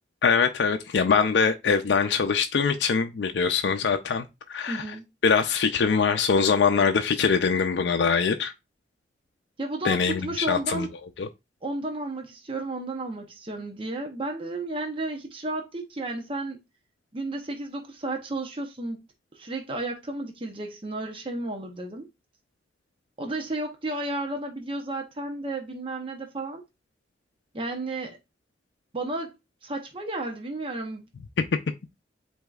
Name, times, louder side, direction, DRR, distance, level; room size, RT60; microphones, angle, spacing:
voice 1, 0.2-4.9 5.2-8.5 9.8-10.9 11.2-11.3 31.4-31.5, left 5 dB, 80° left, 0.4 m, -23 dB
voice 2, 4.7-5.0 9.6-10.9 11.6-16.6 17.1-19.0 19.3-22.1 23.2-26.6 27.5-28.2 28.9-29.3 29.6-31.1, right 2 dB, 30° right, 0.7 m, -33 dB
7.9 x 2.7 x 2.3 m
head